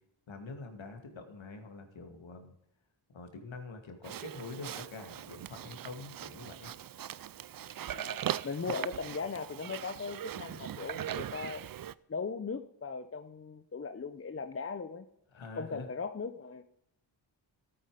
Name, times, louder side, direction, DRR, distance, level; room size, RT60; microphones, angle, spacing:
voice 1, 0.3-2.5 3.1-6.7 15.3-15.9, left 3 dB, 70° left, 5 dB, 2.4 m, -45 dB
Livestock farm animals working animals, 4.0-11.9, right 11 dB, 45° right, 0.5 m, -40 dB
voice 2, 7.9-11.6 12.1-15.1 15.6-16.6, left 5 dB, 30° left, 11 dB, 0.7 m, -38 dB
14.0 x 8.8 x 5.0 m, 0.76 s
cardioid pair, 80°, 49 cm